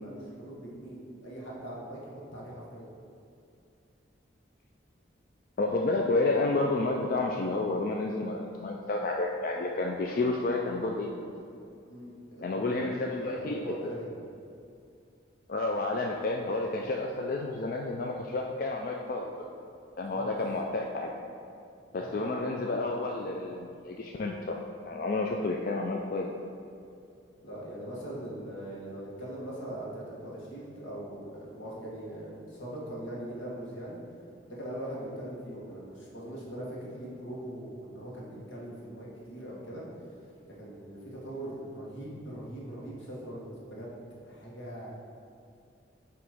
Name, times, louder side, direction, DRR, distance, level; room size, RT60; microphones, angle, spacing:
voice 1, 0.0-2.9 11.9-14.1 20.0-20.3 21.9-22.4 27.4-34.0 34.5-39.8 40.1-40.2 40.5-44.0 44.2-44.9, right 1 dB, 80° left, -5 dB, 1.5 m, -41 dB
voice 2, 5.6-11.2 12.4-13.9 15.5-19.5 20.0-21.1 21.9-24.6 24.8-26.3, left 2 dB, 45° left, 0 dB, 0.3 m, -30 dB
7.8 x 3.0 x 4.9 m, 2.5 s
head